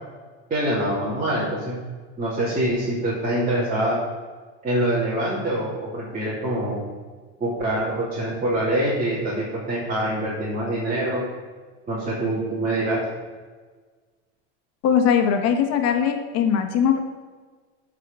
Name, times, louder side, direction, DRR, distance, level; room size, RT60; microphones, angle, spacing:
voice 1, 0.5-1.8 2.2-4.0 4.6-6.8 7.4-11.2 11.9-13.0, right 1 dB, 25° right, -8 dB, 2.9 m, -25 dB
voice 2, 14.8-17.0, left 8 dB, 50° left, 6 dB, 1.5 m, -20 dB
12.0 x 5.0 x 6.2 m, 1.4 s
supercardioid pair, 120°, 32 cm